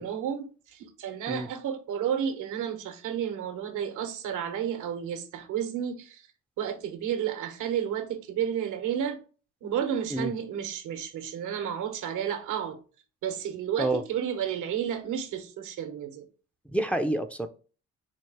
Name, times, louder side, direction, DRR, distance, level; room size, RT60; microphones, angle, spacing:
voice 1, 0.0-6.3 6.6-9.2 9.6-12.8 13.2-16.3, right 9 dB, 85° right, 1.0 m, -31 dB
voice 2, 16.7-17.5, right 1 dB, 5° left, 0.4 m, -28 dB
4.5 x 2.4 x 4.6 m
cardioid pair, 90°, 30 cm